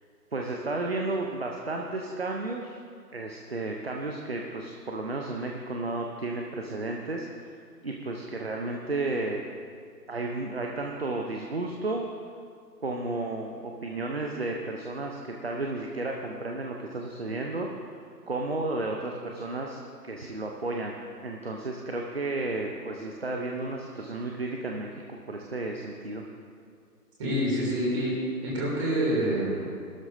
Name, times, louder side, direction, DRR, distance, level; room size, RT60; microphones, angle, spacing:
voice 1, 0.3-2.8 3.1-7.6 7.8-9.5 10.1-12.0 12.8-17.9 18.3-19.8 20.0-20.9 21.2-26.2, right 2 dB, 40° right, 1 dB, 0.8 m, -33 dB
voice 2, 27.2-28.1 28.4-29.7, equal, 20° right, -6 dB, 2.9 m, -27 dB
17.5 x 12.5 x 2.7 m, 2.2 s
figure-of-eight pair, 160°, 50 cm